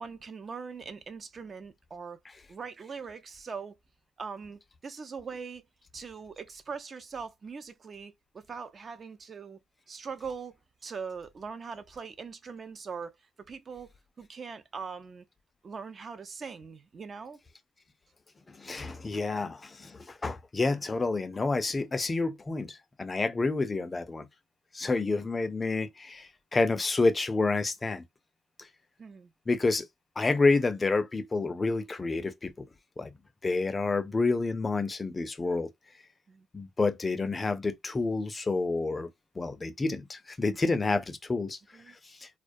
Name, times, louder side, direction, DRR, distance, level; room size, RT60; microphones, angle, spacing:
voice 1, 0.0-2.2 2.5-3.7 4.2-5.6 5.9-9.6 9.9-10.6 10.8-13.1 13.5-13.9 14.2-15.2 15.6-17.4 29.0-29.3 36.3-36.5 41.7-42.0, right 5 dB, 45° right, 0.4 m, -41 dB
voice 2, 18.6-24.3 24.7-28.0 29.5-29.9 30.2-32.7 33.0-33.1 33.4-35.7 36.5-39.1 39.4-41.6 42.0-42.3, left 3 dB, 30° left, 0.4 m, -29 dB
2.3 x 2.2 x 2.5 m
cardioid pair, 90°, 0 cm